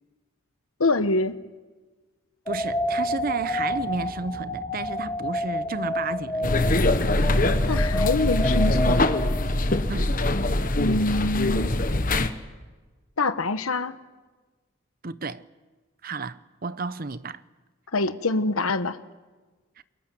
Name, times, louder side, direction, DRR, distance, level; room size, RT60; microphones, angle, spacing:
voice 1, 0.8-1.4 7.7-9.2 10.7-11.7 13.2-14.0 17.9-19.0, left 2 dB, 85° left, 1.2 m, -25 dB
sound 1, 2.5-9.8, left 1 dB, 15° left, 2.4 m, -30 dB
voice 2, 2.5-6.7 9.9-10.2 15.0-15.4 16.0-17.4 19.8-19.9, right 3 dB, 45° right, 0.8 m, -32 dB
sound 2, 6.4-12.3, left 1 dB, 40° left, 1.3 m, -23 dB
29.0 x 22.5 x 7.6 m
head